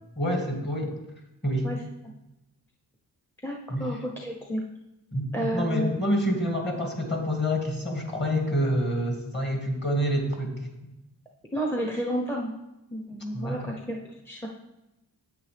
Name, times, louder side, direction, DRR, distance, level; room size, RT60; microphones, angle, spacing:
voice 1, 0.2-1.0 1.4-1.8 3.7-3.9 5.1-10.9 13.3-13.7, equal, 25° left, 1 dB, 2.1 m, -27 dB
voice 2, 3.4-4.6 5.3-5.9 11.5-12.6 12.9-14.0 14.2-14.5, equal, 5° left, -1 dB, 0.9 m, -31 dB
9.4 x 8.6 x 3.4 m, 0.93 s
wide cardioid pair, 105°, 43 cm